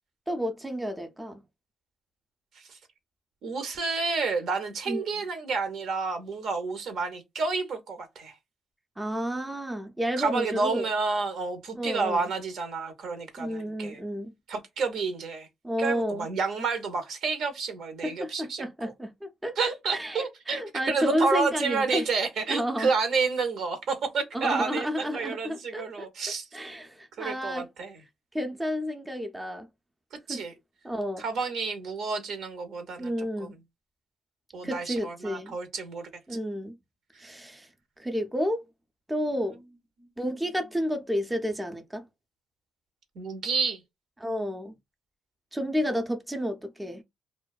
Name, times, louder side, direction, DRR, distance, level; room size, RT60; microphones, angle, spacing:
voice 1, 0.3-1.4 4.9-5.0 9.0-10.9 11.8-12.2 13.4-14.3 15.6-16.3 18.0-22.1 22.5-22.9 24.3-26.1 26.5-27.7 28.3-29.7 30.3-30.4 30.8-31.2 33.0-33.6 34.6-35.5 36.3-36.8 37.2-37.7 38.0-38.6 39.1-39.6 40.2-42.1 44.2-44.7 45.5-47.0, equal, 10° right, 0.4 m, -31 dB
voice 2, 3.4-8.3 10.2-14.0 14.5-15.5 15.8-18.9 19.6-26.4 27.2-28.0 30.3-30.5 31.2-33.5 34.5-36.1 40.0-40.1 43.1-43.8, right 4 dB, 75° right, 0.7 m, -30 dB
2.4 x 2.2 x 2.3 m
cardioid pair, 90°, 0 cm